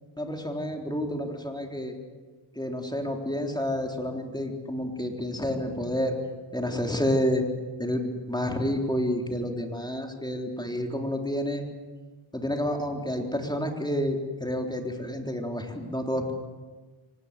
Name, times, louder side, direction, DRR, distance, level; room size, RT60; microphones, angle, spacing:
voice 1, 0.2-1.9 2.6-6.1 6.5-7.4 7.8-11.6 12.3-16.3, left 1 dB, 10° left, 2 dB, 3.7 m, -29 dB
24.0 x 19.0 x 8.3 m, 1.4 s
wide cardioid pair, 70°, 49 cm